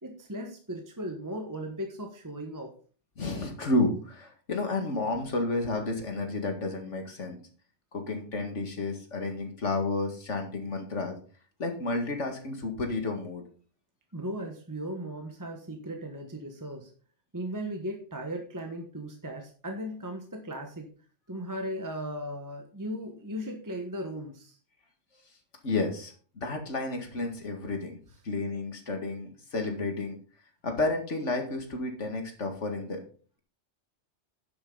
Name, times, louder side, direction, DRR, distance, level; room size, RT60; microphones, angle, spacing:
voice 1, 0.0-2.7 14.1-16.9 17.3-20.9 21.3-24.6, equal, 15° right, 2 dB, 1.3 m, -37 dB
voice 2, 3.2-7.4 7.9-11.2 11.6-13.4 25.6-28.0 28.2-30.2 30.6-33.0, left 2 dB, 75° left, 4 dB, 2.3 m, -31 dB
11.0 x 8.1 x 3.9 m, 0.41 s
omnidirectional pair, 1.2 m